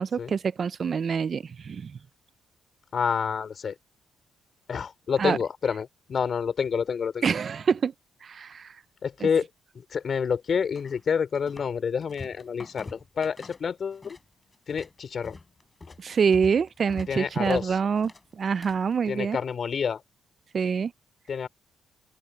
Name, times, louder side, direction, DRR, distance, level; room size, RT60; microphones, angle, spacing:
voice 1, 0.0-2.0 5.2-5.4 7.2-7.9 8.2-8.8 9.2-9.3 16.0-19.4 20.5-20.9, right 6 dB, 45° right, 0.4 m, -26 dB
voice 2, 2.9-3.7 4.7-7.2 9.0-9.5 9.7-14.2 14.7-15.4 17.1-17.8 19.1-20.0 21.3-21.5, left 6 dB, 50° left, 3.2 m, -28 dB
sound 1, 10.7-11.7 12.0-14.2 14.5-18.9, left 3 dB, 25° left, 4.6 m, -45 dB
open air
cardioid pair, 90°, 0 cm